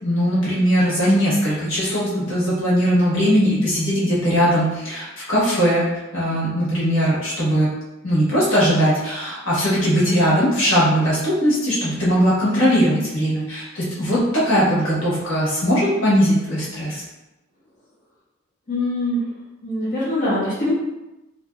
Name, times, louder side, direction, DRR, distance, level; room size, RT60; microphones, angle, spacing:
voice 1, 0.0-5.8 6.1-7.7 8.0-17.0, equal, 75° left, -8 dB, 1.3 m, -19 dB
voice 2, 18.7-19.2 19.6-20.7, left 1 dB, 40° left, -11 dB, 0.9 m, -23 dB
2.7 x 2.6 x 2.3 m, 1.0 s
head